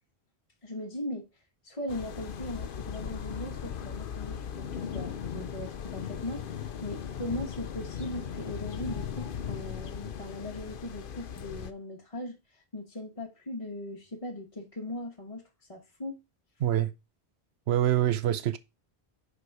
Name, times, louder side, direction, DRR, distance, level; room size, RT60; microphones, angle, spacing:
voice 1, 0.6-1.3 1.6-15.4 15.7-16.2, left 1 dB, 35° left, 1.3 m, -39 dB
sound 1, 1.9-11.7, left 8 dB, 60° left, 0.9 m, -38 dB
voice 2, 16.6-16.9 17.7-18.6, right 11 dB, 80° right, 1.0 m, -25 dB
6.7 x 5.0 x 4.6 m
omnidirectional pair, 1.1 m